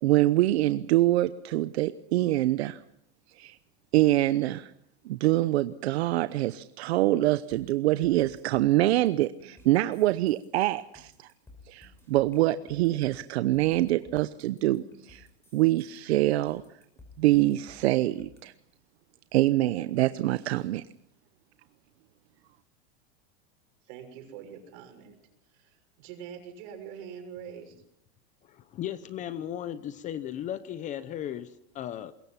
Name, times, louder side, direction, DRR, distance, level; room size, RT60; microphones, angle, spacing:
voice 1, 0.0-2.8 3.4-3.6 3.9-4.7 5.0-11.3 11.7-15.3 15.5-16.6 17.2-18.5 19.3-20.8, right 16 dB, 75° right, 0.9 m, -25 dB
sound 1, 7.5-18.4, left 2 dB, 5° left, 5.9 m, -55 dB
voice 2, 23.9-25.2 25.5-27.7, right 8 dB, 50° right, 6.5 m, -44 dB
voice 3, 28.4-32.1, left 10 dB, 25° left, 0.7 m, -36 dB
24.5 x 22.0 x 5.8 m
supercardioid pair, 165°, 32 cm